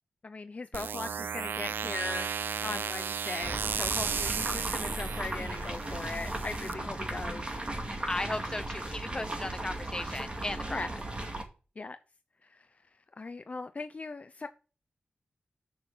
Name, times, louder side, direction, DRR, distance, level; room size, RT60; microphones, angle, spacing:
voice 1, 0.2-2.3 2.6-7.5 10.7-10.9 11.8-12.0 12.4-12.7 13.2-14.5, left 3 dB, 45° left, 0.6 m, -39 dB
sound 1, 0.7-6.7, right 6 dB, 85° right, 0.3 m, -34 dB
sound 2, 3.4-11.4, right 1 dB, 30° right, 2.1 m, -36 dB
voice 2, 8.1-10.8, left 2 dB, 20° left, 1.0 m, -36 dB
6.9 x 6.3 x 5.9 m
wide cardioid pair, 75°, 3 cm